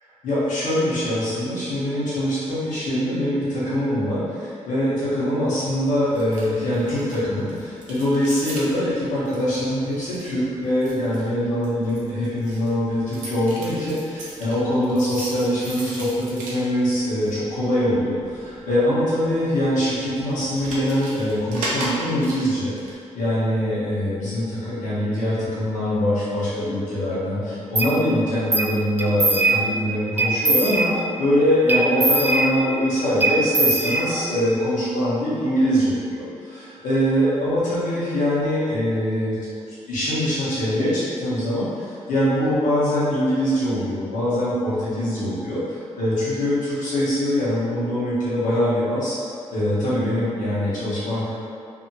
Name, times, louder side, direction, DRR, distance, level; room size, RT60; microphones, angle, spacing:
voice 1, 0.2-39.4 39.7-49.2 49.5-51.3, equal, 80° left, -10 dB, 1.1 m, -23 dB
sound 1, 5.8-22.9, right 1 dB, 85° right, 0.6 m, -38 dB
sound 2, 27.8-27.9 28.5-28.7 29.0-29.8 30.2-31.2 31.7-32.8 33.2-34.4, right 2 dB, 15° right, 0.4 m, -21 dB
2.7 x 2.6 x 2.8 m, 2.4 s
supercardioid pair, 55°, 13 cm